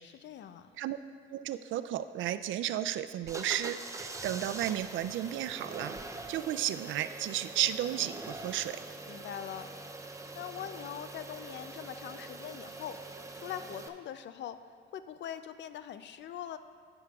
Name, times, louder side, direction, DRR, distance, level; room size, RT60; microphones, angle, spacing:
voice 1, 0.0-0.7 9.1-9.7 10.3-13.0 13.3-14.6 14.9-16.6, left 10 dB, 65° left, 12 dB, 0.5 m, -42 dB
voice 2, 1.3-5.9 6.3-8.8, right 12 dB, 75° right, 12 dB, 0.4 m, -33 dB
sound 1, 3.2-13.9, right 2 dB, 15° right, 0.6 m, -44 dB
12.5 x 8.9 x 2.4 m, 2.3 s
cardioid pair, 90°, 20 cm